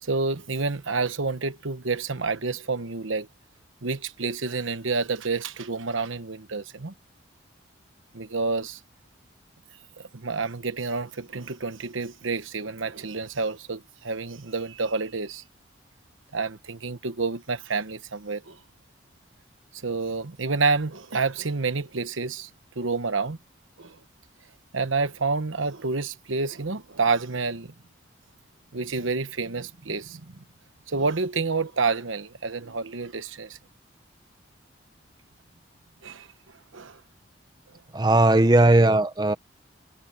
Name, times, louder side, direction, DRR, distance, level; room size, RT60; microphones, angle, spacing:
voice 1, 0.0-3.3 3.8-6.9 8.1-8.8 10.0-15.4 16.3-18.6 19.7-22.5 22.8-23.4 23.8-24.0 24.7-27.7 28.7-30.3 30.9-33.6 36.0-36.3 36.7-37.0, right 4 dB, 85° right, 1.1 m, -29 dB
voice 2, 37.9-39.3, right 2 dB, 20° right, 0.7 m, -18 dB
head